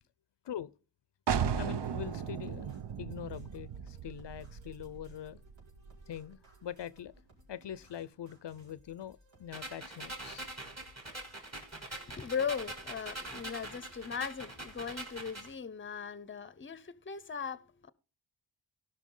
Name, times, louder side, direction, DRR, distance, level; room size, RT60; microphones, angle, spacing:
sound 1, 1.3-6.8, right 7 dB, 65° right, 0.8 m, -37 dB
voice 1, 1.6-5.4 6.1-7.1 7.5-10.5, left 10 dB, 70° left, 0.6 m, -43 dB
sound 2, 1.8-15.5, equal, 85° right, 4.7 m, -63 dB
sound 3, 9.5-15.5, right 1 dB, 35° right, 3.8 m, -44 dB
voice 2, 11.9-17.9, left 6 dB, 25° left, 0.7 m, -38 dB
17.0 x 5.9 x 3.8 m
wide cardioid pair, 95°, 45 cm